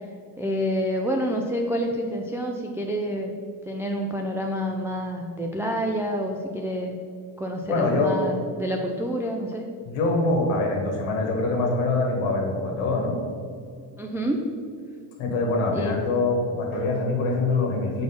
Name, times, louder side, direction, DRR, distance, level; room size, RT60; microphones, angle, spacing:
voice 1, 0.4-3.3 3.6-6.9 7.4-9.7 13.9-14.4 15.7-16.0, equal, 5° right, 1 dB, 0.3 m, -28 dB
voice 2, 7.7-8.2 9.8-13.2 15.2-18.0, left 2 dB, 80° left, 0 dB, 1.4 m, -24 dB
4.3 x 4.2 x 5.6 m, 2.2 s
cardioid pair, 90°, 50 cm